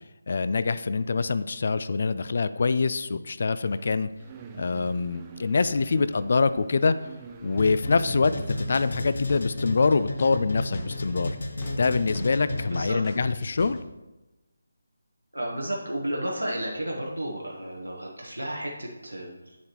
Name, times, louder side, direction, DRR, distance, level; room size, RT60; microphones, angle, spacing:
voice 1, 0.3-4.1 4.6-7.0 7.4-11.4 11.8-13.8, left 4 dB, 50° left, 14 dB, 0.3 m, -25 dB
sound 1, 3.6-8.9, right 6 dB, 20° right, 0.6 m, -46 dB
sound 2, 7.6-13.1, left 2 dB, 65° left, 1.2 m, -32 dB
sound 3, 8.2-8.3 8.8-9.7 10.2-11.3 11.6-13.8, left 1 dB, 20° left, 1.0 m, -37 dB
voice 2, 15.3-19.6, right 1 dB, 85° right, -2 dB, 1.2 m, -32 dB
8.0 x 7.2 x 3.0 m, 1.1 s
figure-of-eight pair, 155°, 0 cm